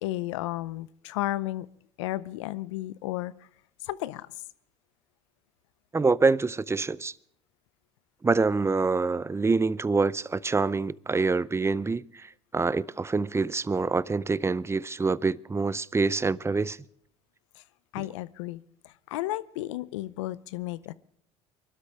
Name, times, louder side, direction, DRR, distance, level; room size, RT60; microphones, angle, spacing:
voice 1, 0.0-1.7 2.0-3.3 3.8-4.3 17.6-17.7 17.9-20.9, left 16 dB, 85° left, 0.6 m, -33 dB
voice 2, 5.9-7.1 8.2-12.0 12.5-16.8, right 4 dB, 15° right, 0.6 m, -26 dB
23.5 x 12.5 x 3.5 m
hypercardioid pair, 70°, 15 cm